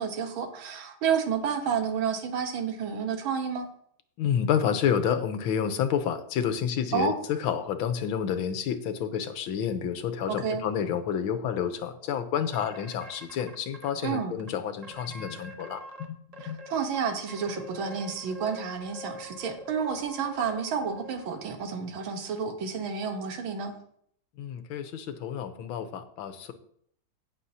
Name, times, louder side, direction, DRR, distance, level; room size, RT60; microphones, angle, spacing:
voice 1, 0.0-3.7 6.9-7.2 10.3-10.6 14.0-14.4 16.4-23.8, right 6 dB, 85° right, 6 dB, 2.0 m, -30 dB
voice 2, 4.2-16.2 16.5-16.6 24.4-26.5, left 8 dB, 85° left, 9 dB, 1.7 m, -29 dB
sound 1, 12.5-13.9 14.4-14.5 14.8-16.0 16.3-21.5, left 1 dB, 35° right, 0.6 m, -45 dB
16.5 x 6.4 x 2.8 m, 0.65 s
omnidirectional pair, 2.2 m